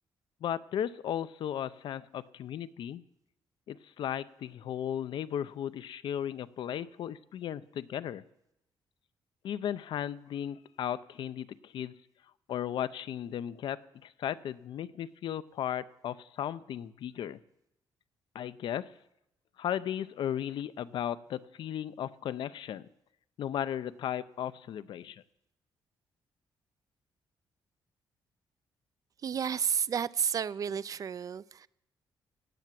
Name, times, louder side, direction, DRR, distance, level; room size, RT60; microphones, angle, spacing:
voice 1, 0.4-3.0 3.7-8.2 9.4-11.9 12.5-17.4 18.3-18.9 19.6-22.9 23.4-25.2, left 10 dB, 70° left, 0.6 m, -36 dB
voice 2, 29.2-31.7, right 7 dB, 45° right, 0.4 m, -31 dB
17.0 x 8.1 x 7.5 m
cardioid pair, 120°, 9 cm